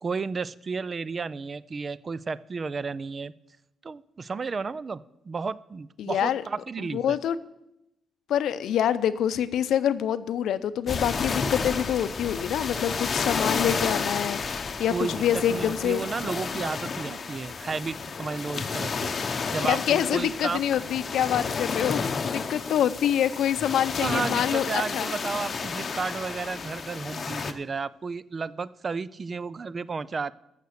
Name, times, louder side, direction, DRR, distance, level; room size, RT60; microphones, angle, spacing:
voice 1, 0.0-3.3 3.8-7.2 14.9-19.1 19.5-20.6 24.0-30.3, right 4 dB, 30° right, 19 dB, 0.4 m, -32 dB
voice 2, 6.0-6.4 6.9-7.4 8.3-16.0 19.7-25.1, left 10 dB, 80° left, 14 dB, 0.6 m, -26 dB
sound 1, 10.9-27.5, left 5 dB, 35° left, 0.8 m, -31 dB
13.5 x 6.8 x 6.5 m, 0.87 s
cardioid pair, 130°, 0 cm